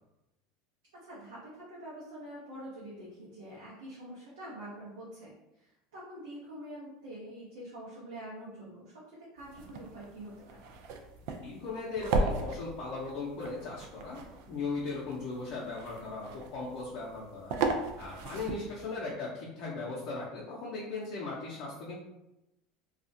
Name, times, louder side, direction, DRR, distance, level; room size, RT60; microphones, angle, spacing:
voice 1, 1.0-8.9 9.3-10.6, right 1 dB, 85° right, -7 dB, 0.7 m, -46 dB
sound 1, 9.4-19.0, right 3 dB, 70° right, 0.3 m, -37 dB
voice 2, 11.4-14.2 14.5-17.5 18.0-22.0, left 3 dB, 60° left, -5 dB, 0.5 m, -38 dB
2.4 x 2.1 x 2.6 m, 0.92 s
supercardioid pair, 100°, 0 cm